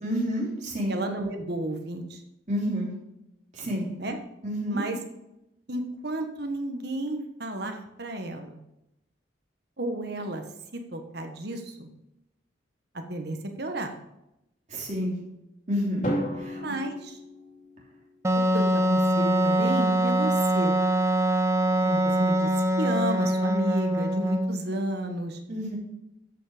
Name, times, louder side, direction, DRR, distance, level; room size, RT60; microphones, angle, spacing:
voice 1, 0.0-1.0 2.5-2.9 3.5-3.9 4.4-4.8 14.7-15.1 15.7-16.0 16.4-16.6 25.5-25.8, equal, 35° right, -4 dB, 3.2 m, -29 dB
voice 2, 0.9-2.2 4.0-4.2 4.7-5.0 5.7-8.6 9.8-10.4 10.7-11.9 13.1-13.9 16.5-17.2 18.3-20.8 21.8-22.5 22.8-25.4, right 1 dB, 55° right, 5 dB, 1.3 m, -32 dB
Drum, 16.0-18.1, equal, 40° left, 2.8 m, -33 dB
Wind instrument woodwind instrument, 18.2-24.7, right 1 dB, 15° right, 0.5 m, -23 dB
13.0 x 5.9 x 5.0 m, 0.88 s
head